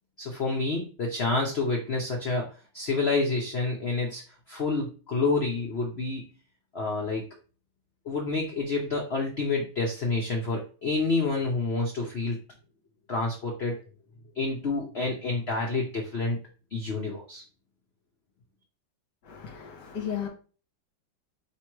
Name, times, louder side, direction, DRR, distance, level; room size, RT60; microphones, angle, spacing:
voice 1, 0.2-2.5 2.7-4.2 4.5-6.2 6.7-7.3 8.0-12.4 13.1-13.8 14.4-16.4 16.7-17.4, left 3 dB, 85° left, 0.5 m, -28 dB
voice 2, 19.3-20.3, left 8 dB, 65° left, 1.4 m, -34 dB
3.2 x 3.0 x 4.5 m
omnidirectional pair, 2.2 m